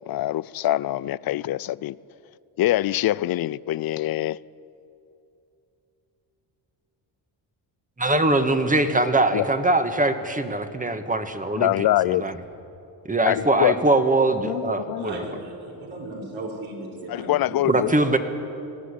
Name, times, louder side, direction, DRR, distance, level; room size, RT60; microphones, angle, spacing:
voice 1, 0.1-2.0 2.6-4.4 9.3-9.4 11.6-12.2 13.3-13.7 14.4-15.1 17.1-17.9, left 14 dB, 50° left, 0.5 m, -24 dB
voice 2, 8.0-11.7 12.1-12.4 13.1-15.3 17.7-18.2, right 2 dB, 15° right, 1.6 m, -22 dB
voice 3, 15.0-18.0, right 2 dB, 70° right, 5.6 m, -36 dB
20.5 x 15.0 x 10.0 m
cardioid pair, 100°, 47 cm